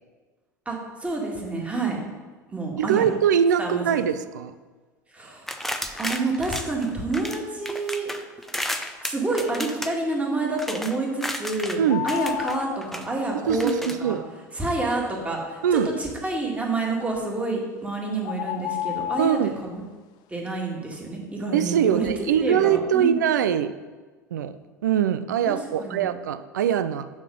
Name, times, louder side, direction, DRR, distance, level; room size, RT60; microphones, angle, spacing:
voice 1, 0.7-2.0 2.5-3.1 3.6-3.8 5.1-8.1 9.0-11.8 12.0-13.7 14.0-14.2 14.5-19.8 20.3-23.2 25.5-26.1, right 3 dB, 15° right, -1 dB, 1.9 m, -28 dB
voice 2, 2.8-4.5 11.8-12.1 13.5-14.2 15.6-15.9 19.2-19.6 21.5-23.7 24.3-24.6 24.8-27.1, right 8 dB, 75° right, 13 dB, 0.4 m, -22 dB
sound 1, 5.5-7.4 7.7-11.8 12.1-13.1 13.5-14.0, left 1 dB, 5° left, 0.6 m, -33 dB
sound 2, 11.9-12.8 17.4-17.5 18.2-19.5, left 11 dB, 50° left, 0.4 m, -30 dB
7.1 x 4.3 x 5.3 m, 1.3 s
hypercardioid pair, 75°, 10 cm